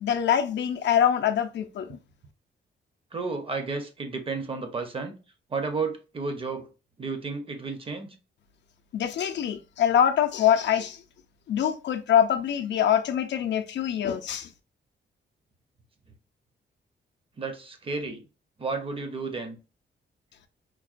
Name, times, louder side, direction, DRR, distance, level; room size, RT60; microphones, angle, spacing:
voice 1, 0.0-2.0 8.9-11.0 11.5-14.5, left 9 dB, 65° left, 0.4 m, -24 dB
voice 2, 3.1-5.2 5.5-6.7 7.0-8.1 17.4-18.2 18.6-19.6, right 4 dB, 30° right, 0.6 m, -32 dB
4.5 x 2.1 x 2.4 m
wide cardioid pair, 170°, 19 cm